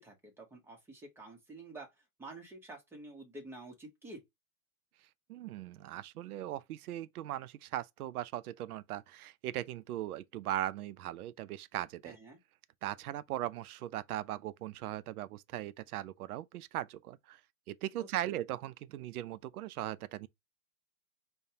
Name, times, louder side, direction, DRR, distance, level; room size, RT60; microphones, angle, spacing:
voice 1, 0.0-1.9 2.2-4.2 12.0-12.4 18.0-18.4, right 2 dB, 5° right, 0.7 m, -49 dB
voice 2, 5.3-12.2 12.8-17.4 17.7-20.3, right 13 dB, 75° right, 0.5 m, -39 dB
5.2 x 2.2 x 2.7 m
hypercardioid pair, 130°, 45 cm